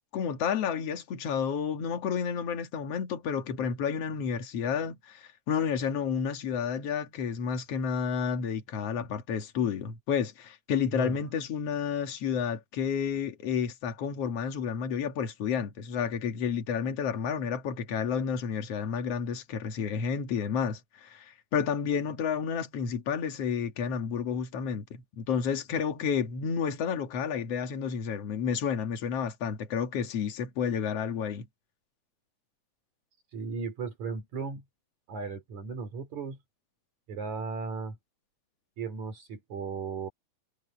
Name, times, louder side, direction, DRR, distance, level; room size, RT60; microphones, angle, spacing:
voice 1, 0.1-31.5, left 7 dB, 55° left, 2.8 m, -31 dB
voice 2, 33.3-34.6 35.1-36.4 37.1-38.0 38.8-40.1, right 4 dB, 65° right, 4.8 m, -36 dB
omnidirectional pair, 3.5 m